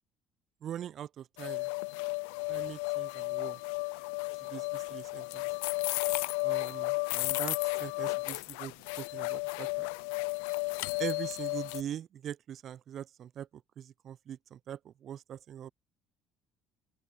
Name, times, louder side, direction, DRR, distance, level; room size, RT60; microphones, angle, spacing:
voice 1, 0.6-1.7 2.5-3.6 4.4-5.5 6.4-9.9 11.0-15.7, right 10 dB, 50° right, 0.6 m, -42 dB
sound 1, 1.4-11.8, left 31 dB, 75° left, 0.4 m, -33 dB
open air
hypercardioid pair, 60°, 0 cm